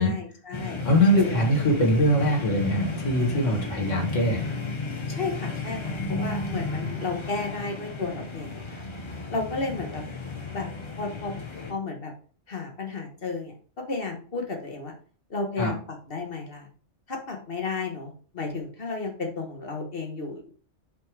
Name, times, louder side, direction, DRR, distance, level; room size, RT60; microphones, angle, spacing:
voice 1, 0.0-0.8 1.1-1.5 5.1-8.8 9.3-10.0 10.5-10.7 11.0-11.3 11.7-12.1 12.5-13.5 13.9-14.9 15.3-16.7 17.1-20.5, left 4 dB, 50° left, 2 dB, 1.5 m, -32 dB
sound 1, 0.5-11.7, left 3 dB, 25° left, 0.8 m, -33 dB
voice 2, 0.8-4.4 15.6-15.7, equal, 80° left, 2 dB, 2.2 m, -22 dB
5.3 x 4.9 x 4.7 m, 0.42 s
omnidirectional pair, 1.3 m